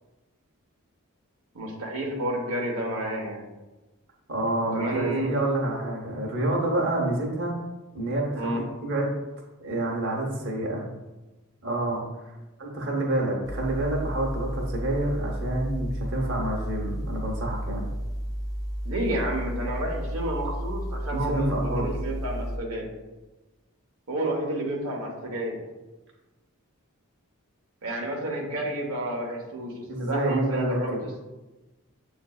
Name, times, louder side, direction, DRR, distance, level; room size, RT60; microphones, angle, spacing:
voice 1, 1.5-3.5 4.7-5.4 8.4-8.7 18.8-22.9 24.1-25.6 27.8-31.2, right 1 dB, 90° right, -1 dB, 0.9 m, -30 dB
voice 2, 4.3-7.5 7.9-9.1 9.6-10.9 11.6-12.3 12.6-17.9 21.1-21.9 29.9-31.0, right 1 dB, 55° right, -2 dB, 0.9 m, -28 dB
sound 1, 13.4-22.6, equal, 15° left, 0.4 m, -32 dB
7.4 x 2.6 x 2.3 m, 1.1 s
head